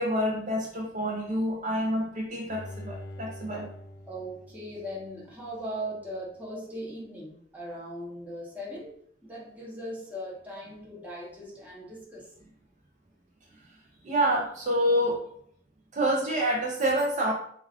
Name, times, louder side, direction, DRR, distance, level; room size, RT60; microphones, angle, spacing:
voice 1, 0.0-3.7 14.0-15.2 15.9-17.3, equal, 45° right, -1 dB, 0.5 m, -27 dB
Bowed string instrument, 2.5-5.6 6.0-6.1, left 1 dB, 80° left, 0.4 m, -45 dB
voice 2, 4.1-8.9 9.2-12.2, equal, 10° right, -6 dB, 0.8 m, -39 dB
2.3 x 2.3 x 3.4 m, 0.64 s
head